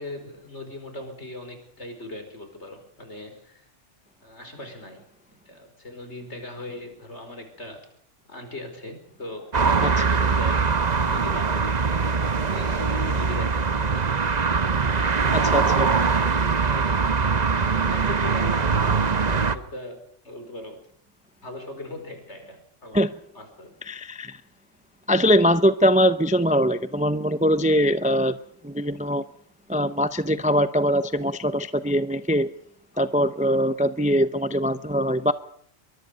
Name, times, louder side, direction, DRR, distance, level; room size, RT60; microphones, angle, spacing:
voice 1, 0.0-3.7 4.2-5.1 5.5-7.9 8.3-10.6 11.0-11.8 12.1-13.8 14.4-17.0 17.5-20.8 21.4-23.0 23.3-23.7 32.9-33.0 33.7-33.8, left 1 dB, 65° left, 6 dB, 5.3 m, -39 dB
sound 1, 9.5-19.5, right 5 dB, 40° right, 1.0 m, -22 dB
voice 2, 15.3-15.9 22.9-23.1 23.9-24.4 25.1-28.4 28.6-29.2 29.7-32.5 33.0-35.3, equal, 10° right, 13 dB, 0.5 m, -22 dB
23.0 x 22.0 x 5.3 m, 0.66 s
omnidirectional pair, 1.2 m